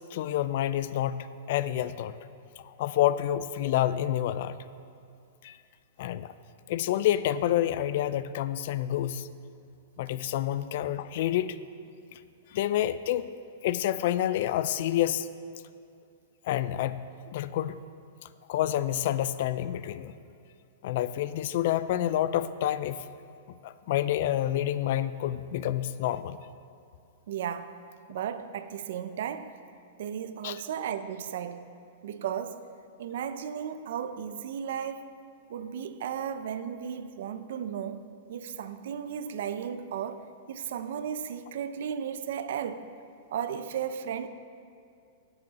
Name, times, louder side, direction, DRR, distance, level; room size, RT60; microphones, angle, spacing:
voice 1, 0.0-2.1 2.6-4.5 5.4-5.6 6.0-6.3 6.7-9.3 10.0-11.6 12.1-12.2 12.5-13.3 13.6-15.3 16.4-17.8 18.5-20.1 20.8-23.0 23.6-26.4 30.4-30.6, left 12 dB, 55° left, 0.4 m, -28 dB
voice 2, 27.3-27.7 28.1-29.5 30.0-31.7 32.0-32.7 33.0-35.1 35.5-42.9 43.3-44.3, right 8 dB, 65° right, 0.6 m, -35 dB
17.0 x 7.0 x 4.1 m
supercardioid pair, 160°, 0 cm